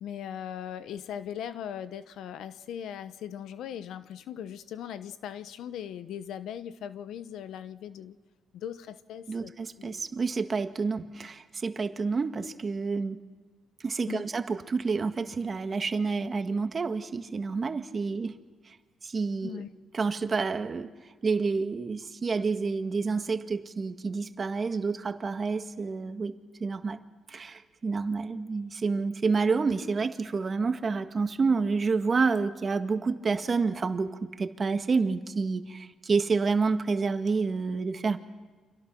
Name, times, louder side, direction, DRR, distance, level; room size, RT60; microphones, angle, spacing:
voice 1, 0.0-8.2 8.5-9.5 9.8-10.0 14.1-14.3 19.4-19.7, left 9 dB, 80° left, 1.0 m, -39 dB
voice 2, 9.3-13.2 13.8-18.3 18.7-18.8 19.0-19.6 19.9-20.9 21.2-27.0 27.3-38.2, right 4 dB, 35° right, 1.7 m, -29 dB
29.5 x 26.0 x 6.1 m
cardioid pair, 90°, 0 cm